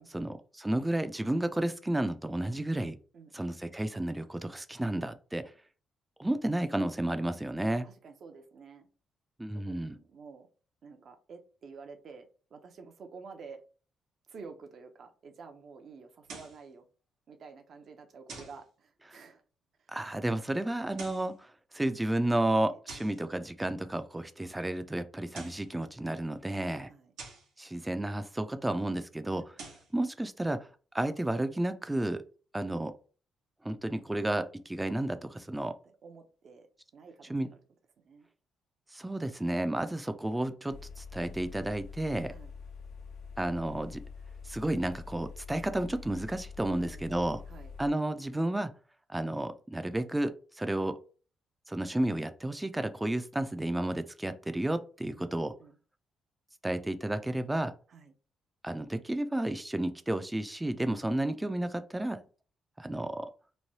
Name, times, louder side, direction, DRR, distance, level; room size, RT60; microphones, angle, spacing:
voice 1, 0.0-3.0 3.3-5.4 6.2-7.9 9.4-9.9 19.9-26.9 27.6-29.5 29.9-30.7 30.9-32.2 32.5-32.9 33.6-35.7 37.3-37.5 38.9-42.3 43.4-44.0 44.5-47.4 47.8-48.7 49.1-51.0 51.7-55.5 56.6-57.7 58.6-62.2 62.8-63.3, right 1 dB, 10° right, 10 dB, 0.4 m, -32 dB
voice 2, 3.1-3.7 7.7-8.9 9.5-10.5 10.8-13.6 14.2-16.9 17.3-19.4 19.8-19.9 20.8-20.9 22.4-23.2 26.9-27.1 35.8-36.7 36.9-37.6 38.0-38.3 42.3-42.5 46.7-47.7 55.1-55.8 57.9-58.1, right 5 dB, 55° right, 5 dB, 0.7 m, -51 dB
sound 1, 16.2-16.6 18.3-18.6 20.8-21.3 22.9-23.2 25.1-25.7 27.2-27.5 29.4-29.9, right 4 dB, 85° right, 1.0 m, -46 dB
sound 2, 40.7-47.9, left 5 dB, 75° left, 0.6 m, -46 dB
3.1 x 2.2 x 2.7 m, 0.37 s
cardioid pair, 90°, 0 cm